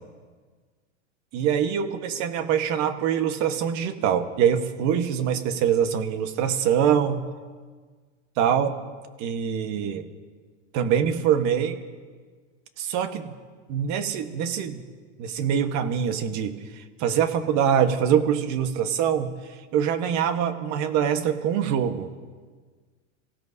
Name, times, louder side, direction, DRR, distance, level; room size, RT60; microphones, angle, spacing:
voice 1, 1.3-7.2 8.4-8.7 9.2-10.1 10.7-11.8 12.8-13.3 13.7-14.8 15.2-19.3 19.7-22.1, right 8 dB, 45° right, 8 dB, 1.4 m, -24 dB
26.5 x 16.0 x 2.8 m, 1.5 s
supercardioid pair, 120°, 38 cm